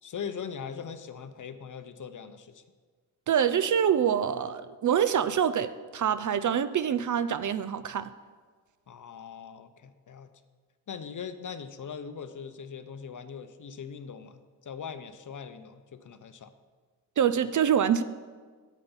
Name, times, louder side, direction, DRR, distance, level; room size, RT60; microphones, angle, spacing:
voice 1, 0.0-2.6 8.9-10.3 10.9-16.5, left 7 dB, 40° left, 0.7 m, -41 dB
voice 2, 3.3-8.1 17.2-18.0, right 8 dB, 45° right, 0.5 m, -25 dB
8.3 x 5.1 x 7.1 m
supercardioid pair, 45°, 46 cm